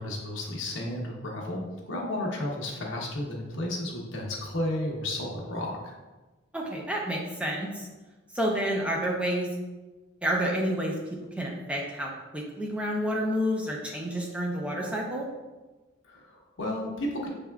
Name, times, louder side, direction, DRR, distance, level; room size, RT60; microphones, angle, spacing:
voice 1, 0.0-5.9 16.0-17.3, left 1 dB, 75° left, -1 dB, 0.9 m, -33 dB
voice 2, 6.5-7.9 8.3-9.5 10.2-10.9 11.4-15.3, equal, 5° right, -1 dB, 0.5 m, -29 dB
6.2 x 3.5 x 2.3 m, 1.2 s
head